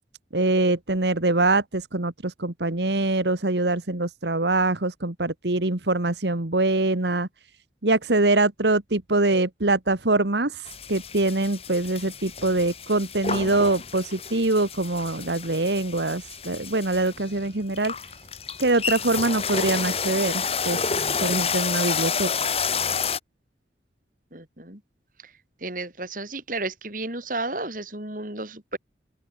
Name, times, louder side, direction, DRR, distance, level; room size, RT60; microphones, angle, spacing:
voice 1, 0.3-7.3 7.8-17.9 18.6-22.5, right 2 dB, 75° right, 1.8 m, -24 dB
sound 1, 10.7-23.2, left 6 dB, 35° left, 5.0 m, -30 dB
voice 2, 24.3-24.8 25.2-25.3 25.6-28.8, right 2 dB, 50° right, 5.8 m, -33 dB
open air
head